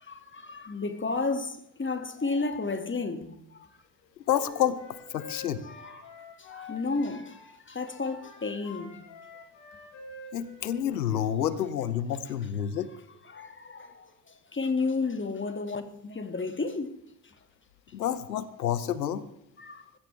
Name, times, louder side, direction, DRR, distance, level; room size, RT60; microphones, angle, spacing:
voice 1, 0.1-3.7 5.6-6.1 6.4-9.0 12.7-12.8 13.2-14.1 14.5-17.0 19.6-19.8, left 3 dB, 25° left, 2.2 m, -32 dB
voice 2, 4.3-4.8 5.1-5.6 10.3-12.9 17.9-19.2, left 10 dB, 90° left, 0.8 m, -29 dB
Wind instrument woodwind instrument, 4.3-7.5 7.8-11.2, left 4 dB, 70° left, 5.7 m, -47 dB
20.5 x 15.5 x 3.4 m
hypercardioid pair, 50°, 50 cm